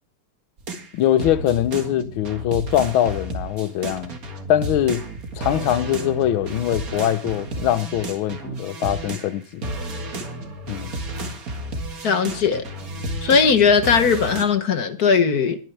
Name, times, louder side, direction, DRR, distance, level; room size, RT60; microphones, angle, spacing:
sound 1, 0.6-9.4 9.6-14.5, right 1 dB, 45° right, 2.1 m, -32 dB
voice 1, 0.9-4.1 4.5-5.1 5.4-9.8 10.7-10.9, left 11 dB, 75° left, 1.7 m, -22 dB
voice 2, 12.0-12.6 13.2-15.6, left 6 dB, 55° left, 1.4 m, -18 dB
21.5 x 9.5 x 3.4 m
omnidirectional pair, 2.3 m